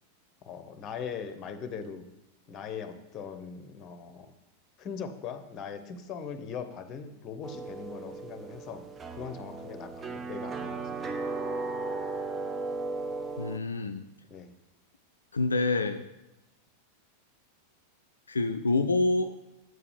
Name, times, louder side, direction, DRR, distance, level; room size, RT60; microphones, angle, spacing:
voice 1, 0.4-2.0 2.5-4.3 4.8-8.8 9.1-11.3 14.3-14.5, left 6 dB, 30° left, 9 dB, 0.8 m, -40 dB
sound 1, 7.4-13.6, right 3 dB, 15° right, 0.6 m, -36 dB
voice 2, 13.4-14.1 15.3-16.0 18.3-19.4, left 2 dB, 75° left, 7 dB, 0.3 m, -27 dB
8.0 x 4.9 x 4.9 m, 0.93 s
figure-of-eight pair, 90°, 0 cm